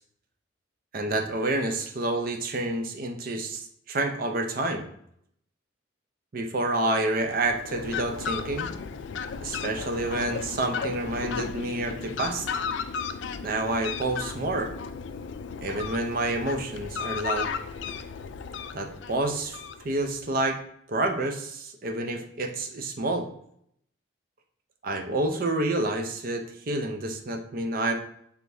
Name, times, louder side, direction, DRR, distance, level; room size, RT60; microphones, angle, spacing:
voice 1, 0.9-4.8 6.3-8.7 9.4-12.5 13.4-14.7 15.6-17.5 18.7-19.6 19.8-20.6 20.9-23.3 24.8-27.9, right 2 dB, 45° right, 5 dB, 0.5 m, -28 dB
Fowl, 7.2-20.2, left 6 dB, 65° left, 0.3 m, -35 dB
5.1 x 3.4 x 2.6 m, 0.69 s
head